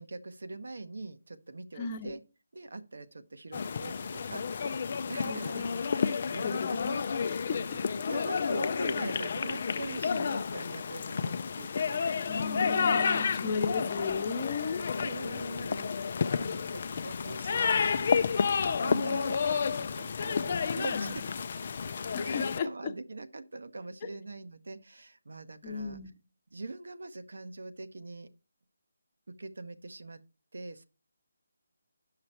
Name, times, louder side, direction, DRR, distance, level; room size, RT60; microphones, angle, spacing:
voice 1, 0.0-2.2 2.5-4.8 5.1-7.7 8.1-13.1 13.5-13.8 15.0-21.4 21.8-21.9 22.2-26.0 26.5-28.3 29.3-30.2 30.5-30.8, right 2 dB, 75° right, 0.9 m, -43 dB
voice 2, 1.8-2.1 5.2-5.7 6.4-7.8 12.3-14.8 20.9-21.2 22.1-22.9 25.6-26.2, left 4 dB, 25° left, 0.9 m, -36 dB
sound 1, 3.5-22.6, left 6 dB, 45° left, 0.4 m, -31 dB
9.6 x 5.9 x 4.4 m
figure-of-eight pair, 160°, 0 cm